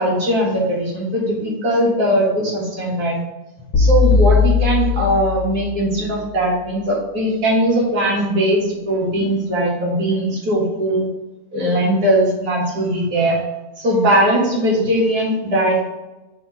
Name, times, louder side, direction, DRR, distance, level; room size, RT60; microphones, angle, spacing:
voice 1, 0.0-3.2 3.8-11.1 11.5-13.4 13.8-15.9, right 1 dB, 75° right, -3 dB, 2.1 m, -19 dB
sound 1, 3.7-6.0, left 5 dB, 60° left, 1.4 m, -17 dB
5.9 x 3.7 x 5.0 m, 1.1 s
omnidirectional pair, 1.6 m